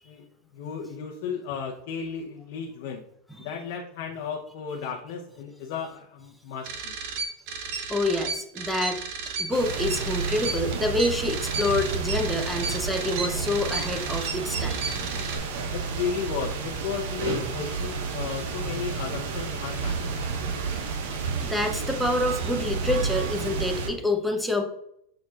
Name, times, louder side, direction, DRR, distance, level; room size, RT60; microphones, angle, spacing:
voice 1, 0.5-3.1 3.4-7.0 15.7-20.1, left 6 dB, 55° left, 1 dB, 0.8 m, -34 dB
sound 1, 6.6-15.4, right 4 dB, 45° right, 1.0 m, -33 dB
voice 2, 7.9-9.0 9.4-14.8 21.4-24.6, left 1 dB, ahead, 4 dB, 0.7 m, -27 dB
sound 2, 9.5-23.9, right 5 dB, 65° right, 1.2 m, -31 dB
7.1 x 6.3 x 2.4 m, 0.73 s
supercardioid pair, 170°, 0 cm